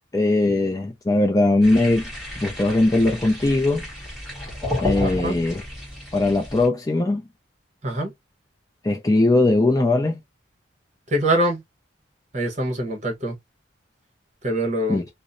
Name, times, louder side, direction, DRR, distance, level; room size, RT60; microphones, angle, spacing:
voice 1, 0.1-2.1 2.4-3.8 4.8-5.6 6.1-7.2 8.8-10.2 14.9-15.0, left 2 dB, 20° left, 0.4 m, -20 dB
sound 1, 1.6-6.7, left 1 dB, ahead, 1.3 m, -31 dB
voice 2, 5.0-5.4 7.8-8.1 11.1-11.6 12.3-13.4 14.4-15.0, right 1 dB, 35° right, 1.0 m, -24 dB
2.9 x 2.0 x 2.5 m
head